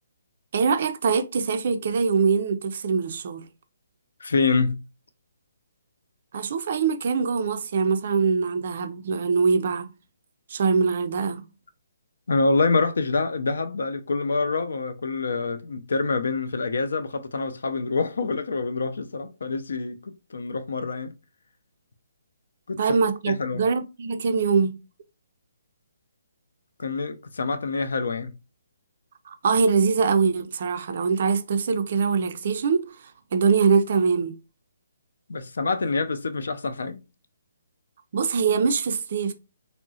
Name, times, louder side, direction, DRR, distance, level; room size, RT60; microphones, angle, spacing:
voice 1, 0.5-3.4 6.3-9.9 10.5-11.4 22.8-24.8 29.3-32.9 33.3-34.3 38.1-39.3, right 5 dB, 40° right, 0.3 m, -23 dB
voice 2, 4.2-4.8 12.3-21.1 22.7-22.8 23.3-23.6 26.8-28.3 35.3-37.0, left 3 dB, 75° left, 0.5 m, -26 dB
3.6 x 2.0 x 2.7 m
hypercardioid pair, 175°, 0 cm